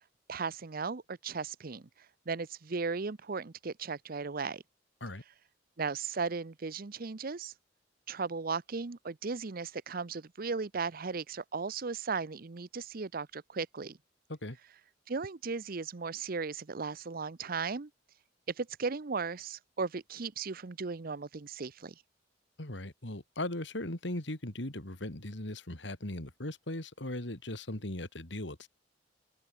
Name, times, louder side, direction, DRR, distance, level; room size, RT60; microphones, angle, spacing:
voice 1, 0.3-1.9 2.3-4.6 5.8-7.5 8.1-14.0 15.1-17.9 18.6-21.9, right 4 dB, 50° right, 0.7 m, -36 dB
voice 2, 22.6-28.7, left 1 dB, 70° left, 3.2 m, -38 dB
open air
head